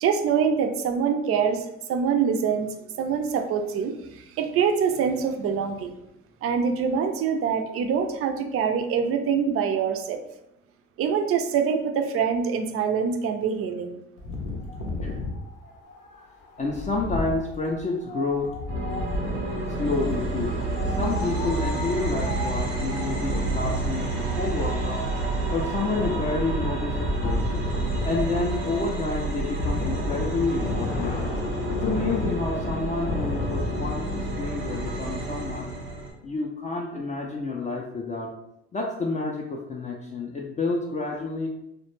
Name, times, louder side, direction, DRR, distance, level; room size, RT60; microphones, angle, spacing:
voice 1, 0.0-2.7 3.0-5.9 6.4-10.2 11.0-14.0, right 6 dB, 45° right, 6 dB, 0.4 m, -25 dB
Wind, 14.2-19.6 20.6-33.9, left 2 dB, 80° left, 0.6 m, -33 dB
voice 2, 15.6-16.3 16.6-18.6 19.8-20.6 21.0-25.1 25.5-27.5 28.0-31.1 31.7-38.3 38.7-41.5, left 3 dB, 25° left, -2 dB, 0.3 m, -29 dB
sound 1, 18.7-36.1, right 2 dB, 90° right, 0.8 m, -29 dB
2.1 x 2.0 x 3.0 m, 0.83 s
supercardioid pair, 70°, 32 cm